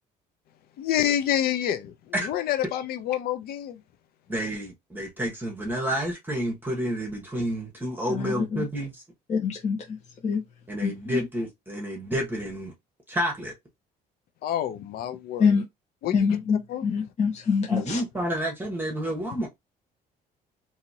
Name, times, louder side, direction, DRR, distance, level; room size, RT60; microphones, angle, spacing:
voice 1, 0.8-3.8 14.4-15.6 16.0-16.4 16.7-16.9, left 11 dB, 65° left, 0.6 m, -28 dB
voice 2, 4.3-9.0 10.7-12.7 13.1-13.5 17.7-19.5, equal, 10° right, 1.1 m, -30 dB
voice 3, 8.1-8.6 9.3-9.8 10.2-10.4 10.8-11.2 15.4-15.6 16.1-18.0, left 6 dB, 40° left, 1.0 m, -25 dB
2.8 x 2.7 x 2.7 m
cardioid pair, 110°, 17 cm